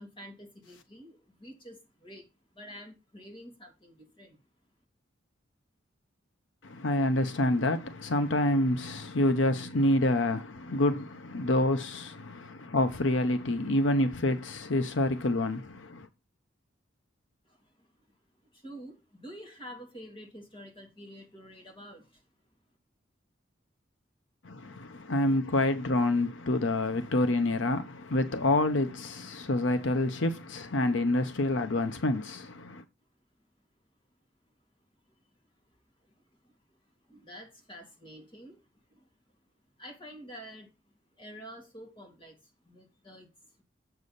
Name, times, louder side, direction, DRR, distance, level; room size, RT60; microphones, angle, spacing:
voice 1, 0.0-4.4 17.4-18.2 18.5-22.2 36.1-36.2 36.4-36.5 37.1-39.1 39.8-43.6, equal, 25° left, 2.8 m, -49 dB
voice 2, 6.6-16.1 24.4-32.8, left 1 dB, 80° left, 0.8 m, -27 dB
7.5 x 7.0 x 4.0 m
head